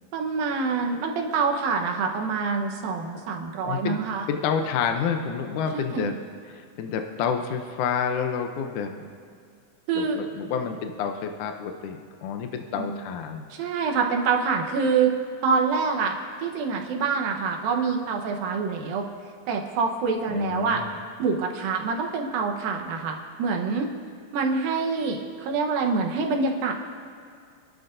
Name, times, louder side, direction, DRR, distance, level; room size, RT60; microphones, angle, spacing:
voice 1, 0.1-4.2 5.7-6.1 9.9-10.2 12.8-12.9 13.5-15.1 15.4-19.1 19.5-20.8 21.2-23.9 24.3-26.7, right 5 dB, 75° right, 2 dB, 2.9 m, -26 dB
voice 2, 3.6-4.0 4.3-6.2 6.5-9.0 9.9-13.5 20.3-21.0, left 7 dB, 75° left, 5 dB, 1.9 m, -29 dB
27.5 x 12.0 x 2.7 m, 2.3 s
omnidirectional pair, 4.3 m